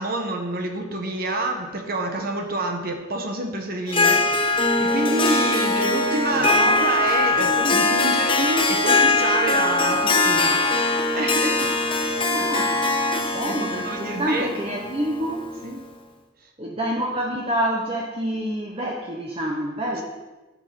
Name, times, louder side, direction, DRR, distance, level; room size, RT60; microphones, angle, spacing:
voice 1, 0.0-10.7 11.1-11.8 12.3-12.4 13.4-14.5 15.6-15.8, right 2 dB, 55° right, 3 dB, 1.1 m, -28 dB
Harp, 3.9-15.7, left 3 dB, 30° left, 1.0 m, -21 dB
voice 2, 6.3-6.8 12.3-12.9 13.3-15.4 16.6-20.0, equal, 30° right, 0 dB, 1.0 m, -27 dB
10.5 x 6.7 x 5.9 m, 1.2 s
head